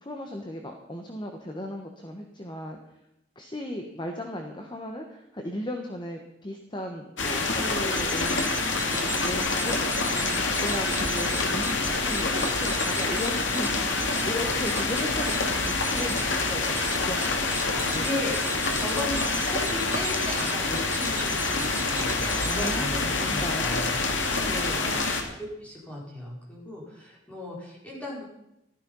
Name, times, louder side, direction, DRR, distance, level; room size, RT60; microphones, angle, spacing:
voice 1, 0.0-2.8 3.3-8.6 8.9-18.2 22.4-23.8 24.4-24.8, left 1 dB, 25° left, 3 dB, 1.4 m, -36 dB
sound 1, 7.2-25.2, left 3 dB, 90° left, 2.4 m, -27 dB
sound 2, 7.6-23.1, right 3 dB, 10° right, 0.8 m, -37 dB
voice 2, 8.6-9.0 17.9-18.3 18.7-23.9 24.7-28.3, left 1 dB, 5° left, -4 dB, 5.0 m, -36 dB
15.0 x 13.0 x 5.6 m, 0.85 s
head